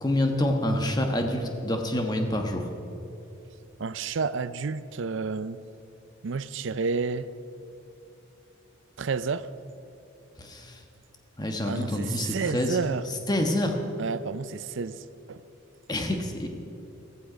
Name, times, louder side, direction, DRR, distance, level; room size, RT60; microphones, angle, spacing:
voice 1, 0.0-2.7 10.4-10.8 11.4-12.8 13.1-13.7 15.9-16.5, left 1 dB, 20° left, 1.3 m, -27 dB
voice 2, 3.8-5.6 6.2-7.3 9.0-9.5 11.6-13.0 14.0-15.4, right 5 dB, 65° right, 0.5 m, -30 dB
15.0 x 15.0 x 5.1 m
head